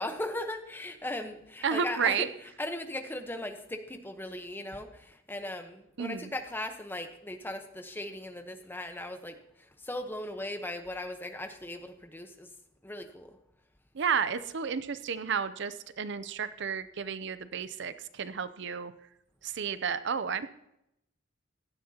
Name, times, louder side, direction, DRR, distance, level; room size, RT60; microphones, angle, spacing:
voice 1, 0.0-2.3 2.6-12.5 12.8-13.3, left 1 dB, 10° left, 6 dB, 1.0 m, -38 dB
voice 2, 1.6-2.3 6.0-6.3 13.9-18.9 19.4-20.5, right 6 dB, 60° right, 13 dB, 0.6 m, -32 dB
16.0 x 11.5 x 2.9 m, 0.80 s
head